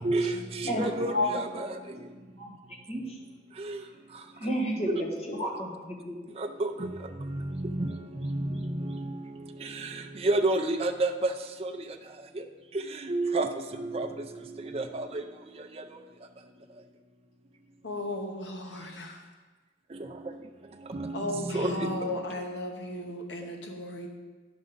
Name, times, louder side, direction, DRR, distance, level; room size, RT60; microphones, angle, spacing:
voice 1, 0.0-2.0 3.6-3.8 4.9-5.0 6.4-11.3 11.6-12.0 12.3-12.4 12.7-15.2 15.8-16.0 19.9-20.3 20.9-22.2, right 2 dB, 35° right, 5 dB, 0.5 m, -31 dB
voice 2, 4.4-6.1, equal, 35° left, -3 dB, 1.5 m, -30 dB
voice 3, 17.8-19.2 21.1-24.1, left 1 dB, 75° left, 2 dB, 1.0 m, -36 dB
9.5 x 6.2 x 4.0 m, 1.3 s
head